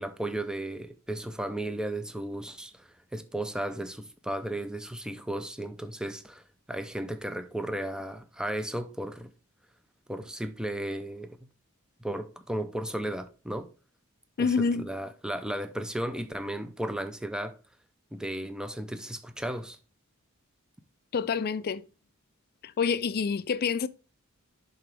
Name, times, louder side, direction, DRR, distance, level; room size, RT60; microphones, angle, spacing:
voice 1, 0.0-6.4 6.7-9.3 10.1-11.3 12.0-13.7 14.4-17.5 18.1-19.8, right 1 dB, 5° right, 0.5 m, -34 dB
voice 2, 14.4-14.9 21.1-21.8 22.6-23.9, left 5 dB, 45° left, 0.4 m, -27 dB
10.5 x 3.9 x 3.4 m
head